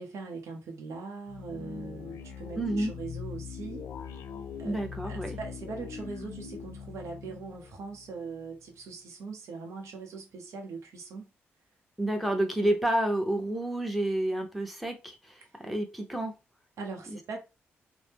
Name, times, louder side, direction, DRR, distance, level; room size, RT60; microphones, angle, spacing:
voice 1, 0.0-3.9 4.6-11.3 16.8-17.4, right 4 dB, 75° right, 0.8 m, -41 dB
sound 1, 1.3-8.5, left 7 dB, 80° left, 0.4 m, -41 dB
voice 2, 2.6-2.9 4.6-5.4 12.0-16.3, right 1 dB, ahead, 0.9 m, -29 dB
2.7 x 2.1 x 3.5 m
supercardioid pair, 55°, 5 cm